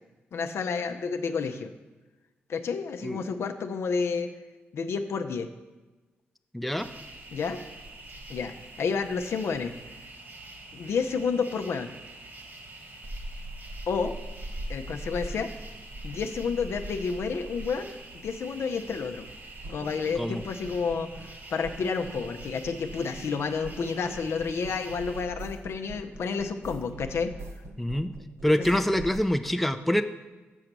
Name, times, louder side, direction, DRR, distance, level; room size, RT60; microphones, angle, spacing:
voice 1, 0.3-1.7 2.5-4.3 4.7-5.5 7.3-7.6 8.3-9.7 10.7-11.9 13.9-14.1 14.7-15.5 16.0-17.9 18.2-19.3 19.7-27.3 28.7-28.8, left 5 dB, 70° left, 6 dB, 0.6 m, -30 dB
voice 2, 6.5-6.9 20.2-20.4 27.8-28.1 28.4-30.0, left 1 dB, ahead, 8 dB, 0.5 m, -25 dB
sound 1, 6.8-25.3, right 1 dB, 50° right, 1.7 m, -43 dB
sound 2, 19.6-21.4 21.6-23.4 23.6-29.2, right 2 dB, 70° right, 0.7 m, -44 dB
6.6 x 6.3 x 6.0 m, 1.2 s
cardioid pair, 60°, 5 cm